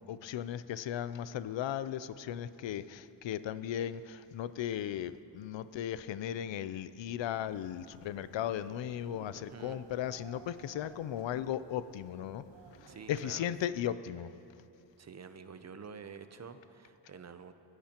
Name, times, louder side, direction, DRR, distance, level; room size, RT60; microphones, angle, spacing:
voice 1, 0.0-12.4 12.8-14.3, left 10 dB, 85° left, 15 dB, 0.5 m, -36 dB
sound 1, 7.3-13.4, right 6 dB, 70° right, 0.8 m, -56 dB
voice 2, 9.3-9.8 12.9-13.5 15.0-17.5, right 6 dB, 40° right, 10 dB, 0.6 m, -48 dB
21.0 x 15.5 x 2.9 m, 3.0 s
wide cardioid pair, 165°, 43 cm